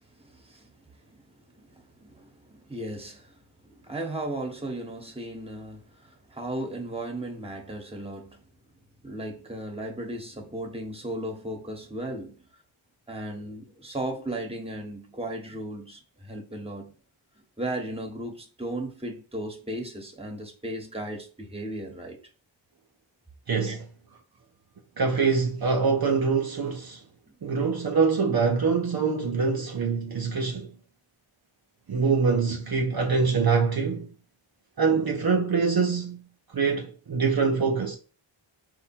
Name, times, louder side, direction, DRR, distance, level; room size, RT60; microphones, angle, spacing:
voice 1, 0.2-8.5 9.0-12.4 13.1-16.9 17.6-22.2 23.7-23.8, right 1 dB, 10° right, 1.2 m, -36 dB
voice 2, 23.5-23.8 25.0-27.0 27.4-30.7 31.9-34.1 34.8-36.2 36.5-38.0, right 5 dB, 50° right, 0.7 m, -24 dB
4.7 x 2.2 x 4.3 m
wide cardioid pair, 110°, 48 cm